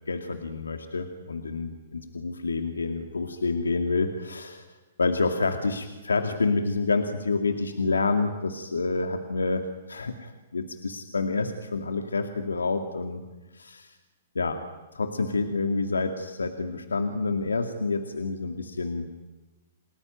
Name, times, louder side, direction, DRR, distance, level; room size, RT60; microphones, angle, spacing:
voice 1, 0.1-4.6 5.0-13.2 13.5-14.0 14.3-14.6 14.9-19.2, left 3 dB, 90° left, 6 dB, 2.3 m, -28 dB
30.0 x 20.0 x 9.3 m, 1.2 s
hypercardioid pair, 125°, 0 cm